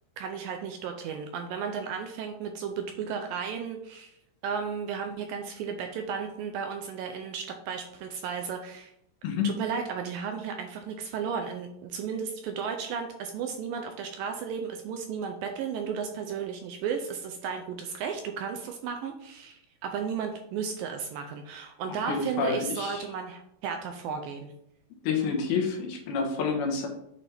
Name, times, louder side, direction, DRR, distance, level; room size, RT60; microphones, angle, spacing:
voice 1, 0.2-4.1 4.4-8.9 9.4-24.5, right 6 dB, 80° right, 4 dB, 2.1 m, -34 dB
voice 2, 9.2-9.6 22.1-23.0 25.0-26.9, left 5 dB, 80° left, 2 dB, 2.9 m, -28 dB
8.3 x 4.2 x 3.4 m, 0.77 s
omnidirectional pair, 4.4 m